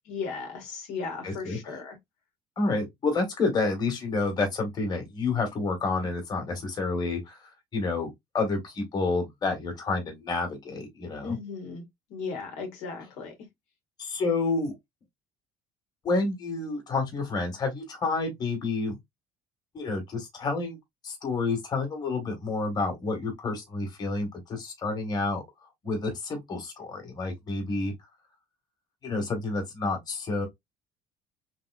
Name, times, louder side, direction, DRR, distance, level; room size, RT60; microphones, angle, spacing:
voice 1, 0.1-2.0 11.2-11.8 12.1-13.3, left 5 dB, 75° left, 1.3 m, -36 dB
voice 2, 1.2-1.6 2.6-7.4 7.7-11.4 14.0-14.7 16.0-19.0 19.7-20.8 21.0-25.4 25.8-27.9 29.0-30.5, left 3 dB, 35° left, 1.5 m, -29 dB
3.6 x 2.8 x 2.4 m
cardioid pair, 120°, 12 cm